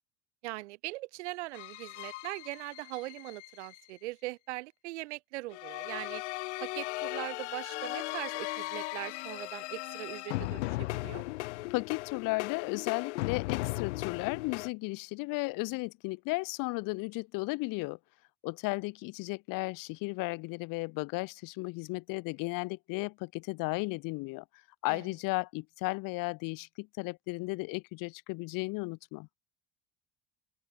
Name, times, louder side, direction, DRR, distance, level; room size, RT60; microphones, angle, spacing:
voice 1, 0.4-6.2 6.6-11.2 24.9-25.0, right 20 dB, 85° right, 1.7 m, -41 dB
sound 1, 1.5-3.8 5.5-14.7, left 21 dB, 85° left, 1.0 m, -37 dB
voice 2, 11.7-18.0 18.4-24.4 24.8-29.3, left 25 dB, 70° left, 3.2 m, -35 dB
open air
supercardioid pair, 85°, 34 cm